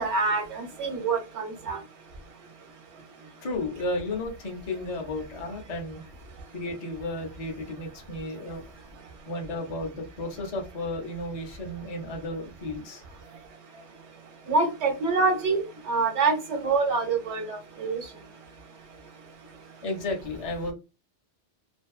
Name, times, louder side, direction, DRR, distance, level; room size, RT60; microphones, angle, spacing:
voice 1, 0.0-1.8 14.5-18.0, right 4 dB, 75° right, 1.0 m, -26 dB
voice 2, 3.4-6.0 6.5-8.6 9.3-13.0 19.8-20.7, left 2 dB, 40° left, 0.6 m, -33 dB
2.5 x 2.2 x 2.3 m
omnidirectional pair, 1.2 m